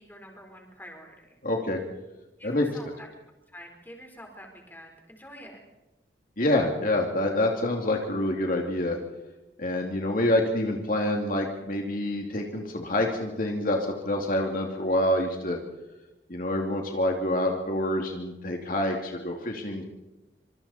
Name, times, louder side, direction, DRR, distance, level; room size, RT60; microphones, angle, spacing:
voice 1, 0.0-1.3 2.4-3.1 3.5-5.6, equal, 10° left, 2 dB, 4.4 m, -47 dB
voice 2, 1.4-1.8 2.4-2.7 6.4-9.0 9.6-15.6 16.3-19.8, left 1 dB, 50° left, 1 dB, 2.6 m, -27 dB
26.0 x 25.5 x 4.4 m, 0.99 s
head